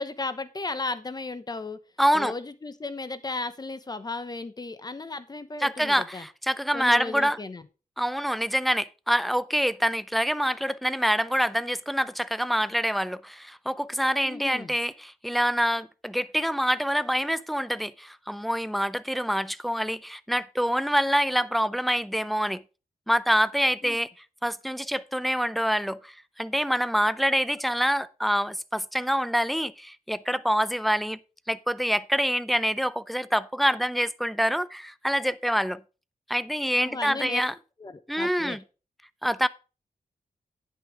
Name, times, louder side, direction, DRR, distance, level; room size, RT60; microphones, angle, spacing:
voice 1, 0.0-1.8 2.1-6.3 6.7-7.6 14.2-14.7 23.8-24.0 36.7-37.4 37.8-38.6, left 3 dB, 30° left, 1.0 m, -35 dB
voice 2, 2.0-2.3 5.6-7.4 8.0-22.6 23.1-24.1 24.4-31.2 31.5-35.8 36.3-37.5 38.1-38.6 39.2-39.5, equal, ahead, 0.5 m, -26 dB
10.0 x 6.1 x 4.8 m
wide cardioid pair, 95°, 14 cm